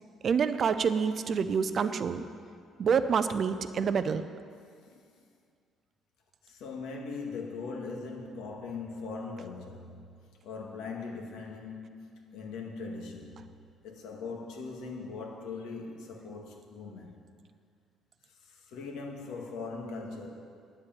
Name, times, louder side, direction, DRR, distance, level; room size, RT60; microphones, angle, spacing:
voice 1, 0.2-2.2 2.8-4.2, right 6 dB, 35° right, 11 dB, 0.4 m, -27 dB
voice 2, 6.4-10.1 10.4-13.5 13.8-17.1 18.3-20.3, left 4 dB, 80° left, 1 dB, 2.0 m, -40 dB
9.7 x 8.0 x 9.2 m, 2.2 s
cardioid pair, 175°, 0 cm